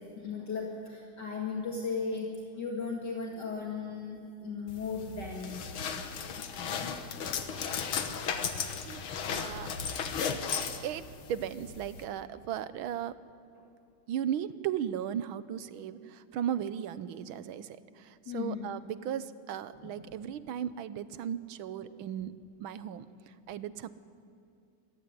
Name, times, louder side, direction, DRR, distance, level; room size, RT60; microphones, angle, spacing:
voice 1, 0.0-5.6 9.5-9.6 10.6-10.8 18.3-18.6 20.0-20.1, left 4 dB, 55° left, 0 dB, 2.6 m, -36 dB
sound 1, 4.7-12.0, left 6 dB, 75° left, 2.1 m, -35 dB
voice 2, 9.3-9.7 10.8-13.2 14.1-22.3 22.6-23.9, right 10 dB, 80° right, 14 dB, 1.6 m, -36 dB
26.0 x 15.5 x 9.7 m, 2.4 s
omnidirectional pair, 2.3 m